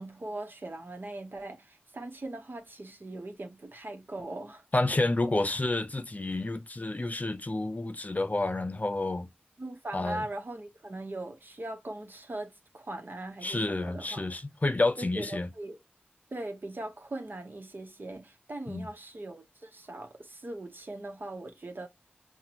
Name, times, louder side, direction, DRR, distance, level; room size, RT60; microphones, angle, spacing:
voice 1, 0.0-4.6 9.6-14.3 15.0-15.8 16.3-21.9, right 2 dB, 65° right, 1.1 m, -40 dB
voice 2, 4.7-9.3 9.9-10.2 13.4-15.5 18.7-18.9, left 2 dB, 45° left, 0.6 m, -29 dB
5.8 x 2.3 x 2.9 m
wide cardioid pair, 40°, 4 cm